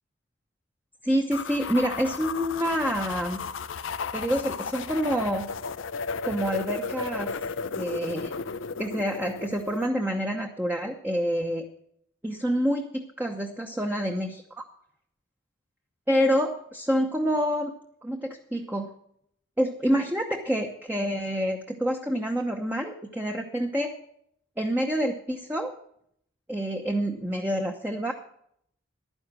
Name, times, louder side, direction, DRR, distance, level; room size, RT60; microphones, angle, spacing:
voice 1, 1.0-3.4 4.1-5.5 6.2-7.3 7.8-8.3 8.8-11.6 12.2-14.6 16.1-17.7 18.0-18.9 19.6-23.9 24.6-25.7 26.5-28.1, equal, 10° right, 2 dB, 0.9 m, -27 dB
sound 1, 1.3-9.9, left 5 dB, 70° left, 0.6 m, -34 dB
12.0 x 10.0 x 6.0 m, 0.69 s
head